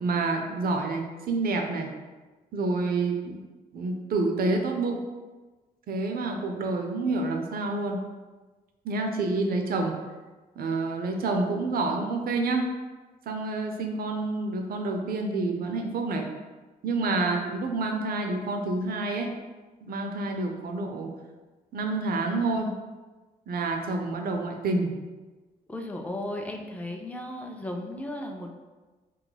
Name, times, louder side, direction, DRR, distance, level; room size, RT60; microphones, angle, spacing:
voice 1, 0.0-1.9 2.5-3.4 3.7-5.0 5.9-8.1 8.8-10.0 10.6-12.7 13.3-16.3 16.8-19.3 19.8-21.1 21.7-22.8 23.5-25.0, right 3 dB, 65° right, 3 dB, 0.5 m, -28 dB
voice 2, 25.7-28.5, left 1 dB, 10° left, 2 dB, 0.4 m, -35 dB
2.6 x 2.3 x 3.9 m, 1.3 s
cardioid pair, 70°, 17 cm